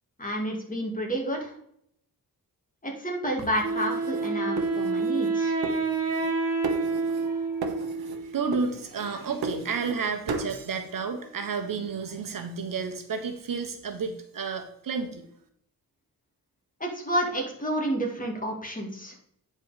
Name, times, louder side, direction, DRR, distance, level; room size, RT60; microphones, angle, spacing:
voice 1, 0.2-1.5 2.8-5.5 16.8-19.1, right 1 dB, 20° left, 1 dB, 2.1 m, -30 dB
sound 1, 3.4-5.3 5.6-6.4 6.6-7.3 7.6-8.2 8.5-10.0 10.3-10.6, right 3 dB, 80° right, 1.2 m, -35 dB
Wind instrument woodwind instrument, 3.6-8.4, right 4 dB, 40° right, 1.7 m, -28 dB
voice 2, 7.2-15.3, right 5 dB, 60° right, 6 dB, 1.3 m, -32 dB
9.3 x 4.4 x 4.9 m, 0.69 s
wide cardioid pair, 130°, 37 cm